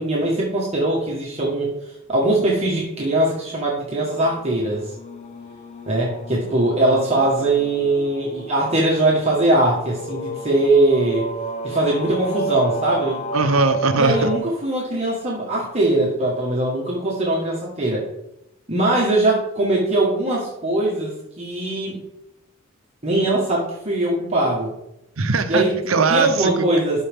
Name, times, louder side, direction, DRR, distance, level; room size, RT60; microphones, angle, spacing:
voice 1, 0.0-4.9 5.9-11.3 11.6-13.2 14.0-18.1 18.7-22.0 23.0-24.7 25.5-25.7 26.1-27.0, right 2 dB, 30° right, -4 dB, 1.5 m, -21 dB
sound 1, 4.1-14.4, right 2 dB, 35° left, 0.7 m, -32 dB
voice 2, 13.3-14.3 25.2-26.7, right 4 dB, 85° right, 9 dB, 0.8 m, -20 dB
12.5 x 4.6 x 3.6 m, 0.83 s
head